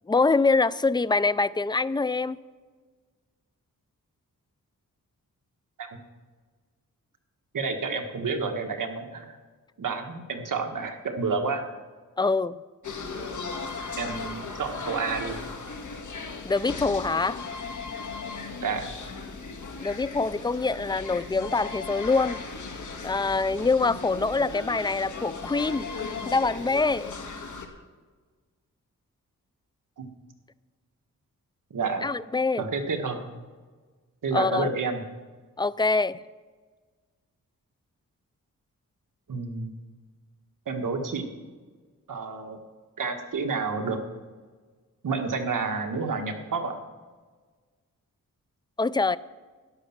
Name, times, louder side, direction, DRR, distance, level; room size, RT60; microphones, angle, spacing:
voice 1, 0.1-2.4 12.2-12.6 16.4-17.4 19.8-22.4 23.0-25.9 26.3-27.1 32.0-32.6 34.3-34.7 35.6-36.2 48.8-49.2, left 3 dB, 15° left, 17 dB, 0.3 m, -24 dB
voice 2, 7.5-9.4 9.8-11.7 14.0-15.4 18.6-18.9 30.0-30.1 31.7-32.1 32.6-33.3 34.2-35.0 39.3-39.7 40.6-41.3 42.1-42.6 43.0-44.0 45.0-46.8, right 4 dB, 65° right, 4 dB, 1.6 m, -30 dB
sound 1, 12.8-27.7, left 4 dB, 60° left, 1.7 m, -37 dB
13.0 x 10.5 x 5.9 m, 1.4 s
wide cardioid pair, 85°, 34 cm